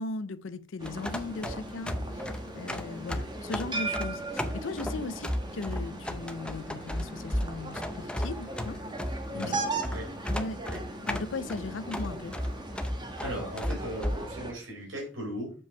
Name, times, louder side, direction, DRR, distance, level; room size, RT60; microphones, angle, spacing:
voice 1, 0.0-8.8 9.3-9.7 10.3-10.6 11.0-12.4, left 3 dB, 70° left, 0.5 m, -38 dB
sound 1, 0.8-14.3, equal, 5° left, 0.6 m, -35 dB
sound 2, 0.8-14.5, right 2 dB, 25° right, 1.2 m, -38 dB
voice 2, 13.2-15.5, equal, 80° right, 4.2 m, -37 dB
7.1 x 5.4 x 4.5 m
head